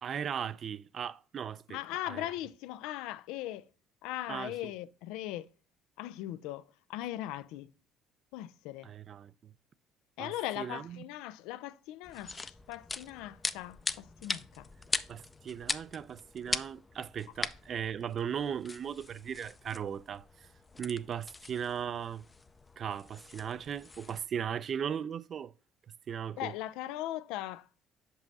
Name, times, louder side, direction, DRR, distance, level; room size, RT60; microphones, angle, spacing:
voice 1, 0.0-1.8 2.1-2.3 4.3-4.5 8.8-9.5 10.2-11.0 15.1-20.5 20.8-22.3 22.8-25.5 26.1-26.5, right 8 dB, 45° right, 0.4 m, -37 dB
voice 2, 1.7-3.7 4.0-5.5 6.0-7.7 8.3-8.9 10.2-14.7 26.4-27.7, left 14 dB, 85° left, 0.3 m, -39 dB
sound 1, 12.0-24.3, left 3 dB, 20° left, 0.4 m, -41 dB
6.1 x 5.4 x 4.0 m
cardioid pair, 105°, 0 cm